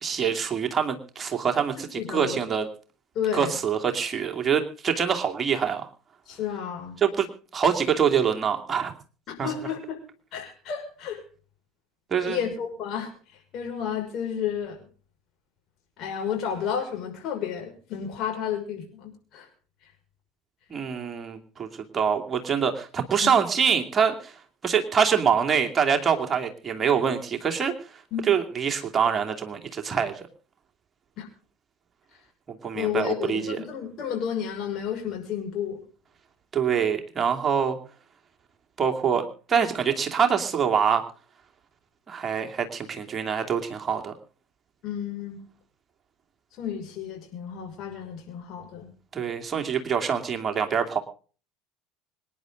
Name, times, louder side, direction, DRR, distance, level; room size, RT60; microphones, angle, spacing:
voice 1, 0.0-2.7 3.3-5.9 7.0-7.3 7.5-8.9 9.4-9.5 12.1-12.4 20.7-21.7 21.9-24.3 24.6-27.7 28.3-30.2 32.5-33.6 36.5-37.8 38.8-41.0 42.1-44.1 49.1-51.0, right 7 dB, 30° right, 3 dB, 2.6 m, -25 dB
voice 2, 1.8-2.4 3.1-3.6 6.3-7.0 9.3-10.0 10.3-11.2 12.2-13.1 13.5-14.8 16.0-19.5 23.2-23.3 28.1-28.3 31.2-31.3 32.7-35.8 44.8-45.4 46.6-48.9, left 8 dB, 50° left, 2 dB, 6.2 m, -31 dB
25.5 x 10.5 x 3.9 m, 0.40 s
hypercardioid pair, 70°, 0 cm